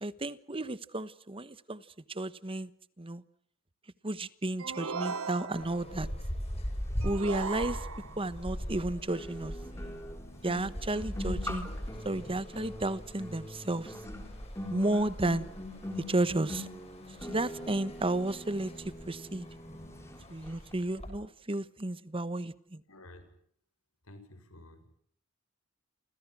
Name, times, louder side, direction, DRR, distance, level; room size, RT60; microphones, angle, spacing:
voice 1, 0.0-1.8 2.1-2.7 3.0-3.2 4.0-6.1 7.0-7.9 8.2-9.5 10.4-11.7 12.0-13.9 14.7-15.5 16.0-16.7 17.2-19.5 20.3-22.8, right 2 dB, 25° right, 15 dB, 1.2 m, -32 dB
sound 1, 4.6-5.9 7.0-8.3, right 5 dB, 85° right, 1.4 m, -38 dB
sound 2, 5.5-21.1, equal, 30° left, 7.4 m, -41 dB
sound 3, 7.7-7.8 9.1-20.2 20.4-20.7, left 1 dB, 15° left, 4.2 m, -43 dB
voice 2, 22.9-23.2 24.1-24.9, left 1 dB, 85° left, 9 dB, 7.0 m, -51 dB
29.0 x 27.0 x 6.2 m, 0.65 s
head